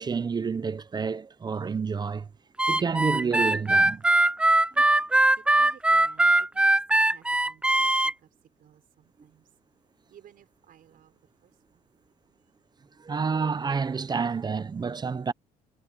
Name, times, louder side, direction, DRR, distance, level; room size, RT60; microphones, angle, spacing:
voice 1, 0.0-2.3 2.7-4.0 13.0-15.3, right 5 dB, 25° right, 0.7 m, -29 dB
Harmonica, 2.6-8.1, right 2 dB, 5° right, 0.4 m, -21 dB
voice 2, 5.4-8.3 8.6-9.5 10.1-11.9, right 10 dB, 55° right, 5.4 m, -56 dB
cardioid pair, 110°, 17 cm